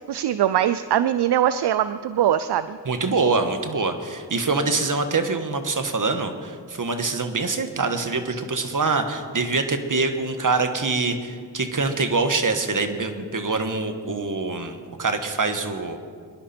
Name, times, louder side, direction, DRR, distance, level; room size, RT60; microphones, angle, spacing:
voice 1, 0.0-2.8 8.3-8.4, right 11 dB, 70° right, 13 dB, 0.5 m, -22 dB
voice 2, 2.8-16.0, right 3 dB, 45° right, 7 dB, 1.6 m, -25 dB
23.0 x 11.0 x 4.4 m, 2.1 s
cardioid pair, 50°, 42 cm